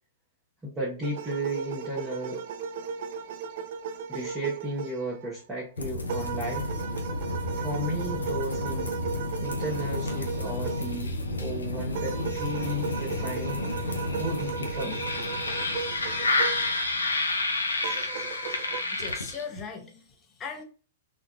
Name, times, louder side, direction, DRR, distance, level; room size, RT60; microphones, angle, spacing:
voice 1, 0.6-2.4 4.1-6.7 7.5-9.0 9.4-13.6 14.2-15.0, right 1 dB, 15° right, -5 dB, 0.9 m, -34 dB
sound 1, 1.0-5.3 6.1-11.0 11.9-16.7 17.8-18.8, right 6 dB, 55° right, 0.3 m, -36 dB
sound 2, 5.8-19.7, left 2 dB, 85° left, 0.6 m, -30 dB
voice 2, 18.7-20.6, left 5 dB, 25° left, 3 dB, 0.8 m, -39 dB
3.9 x 2.3 x 2.4 m, 0.38 s
figure-of-eight pair, 105°, 0 cm